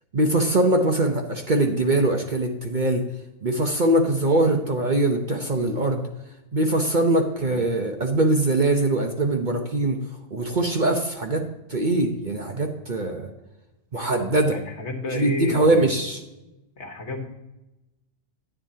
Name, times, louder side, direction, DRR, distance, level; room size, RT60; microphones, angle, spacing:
voice 1, 0.1-3.0 3.4-6.1 6.5-10.0 10.3-13.3 13.9-14.5 15.1-16.2, right 2 dB, 40° right, 3 dB, 0.8 m, -22 dB
voice 2, 14.5-16.0 16.8-17.3, left 2 dB, 55° left, 4 dB, 1.5 m, -32 dB
10.5 x 9.7 x 2.8 m, 0.98 s
omnidirectional pair, 1.4 m